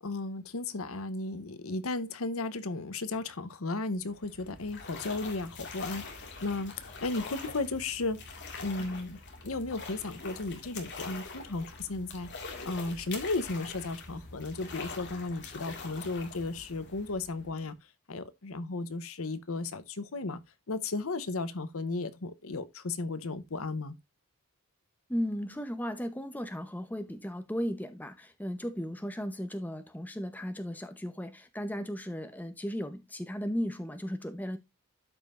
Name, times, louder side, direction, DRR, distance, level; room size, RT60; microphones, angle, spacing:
voice 1, 0.0-8.2 8.6-17.7 18.1-20.4 20.7-24.0, left 3 dB, 70° left, 0.9 m, -35 dB
sound 1, 4.0-17.7, left 4 dB, 50° left, 2.0 m, -44 dB
voice 2, 25.1-34.6, equal, 10° left, 0.8 m, -35 dB
13.0 x 5.3 x 2.5 m
head